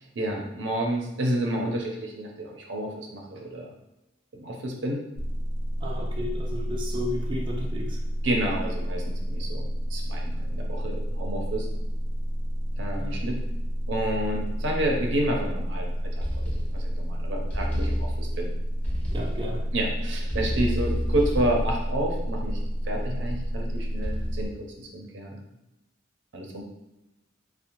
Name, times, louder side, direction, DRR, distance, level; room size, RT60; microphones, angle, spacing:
voice 1, 0.2-3.7 4.3-5.0 8.2-11.7 12.8-13.4 13.9-18.5 19.7-22.6 22.9-25.4 26.3-26.6, right 1 dB, 75° right, 0 dB, 0.5 m, -30 dB
sound 1, 5.2-24.5, equal, 60° left, 0.4 m, -30 dB
voice 2, 5.8-8.0 12.9-13.2 19.1-19.7, left 1 dB, 25° right, -2 dB, 0.3 m, -34 dB
sound 2, 16.2-17.1 17.5-18.4 18.8-19.6 20.3-22.8 23.3-23.6 24.0-24.5, equal, 10° left, 0.7 m, -31 dB
2.6 x 2.1 x 2.8 m, 0.95 s
head